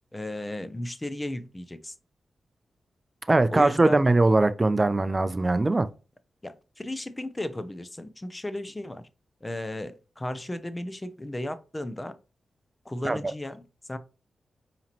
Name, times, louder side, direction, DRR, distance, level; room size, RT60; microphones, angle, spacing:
voice 1, 0.1-1.9 3.5-4.0 6.4-9.0 9.4-12.1 12.8-13.6 13.9-14.0, left 1 dB, 20° left, 0.6 m, -35 dB
voice 2, 3.3-5.9 13.0-13.2, right 2 dB, 30° right, 0.5 m, -21 dB
5.0 x 3.0 x 2.9 m
supercardioid pair, 45°, 0 cm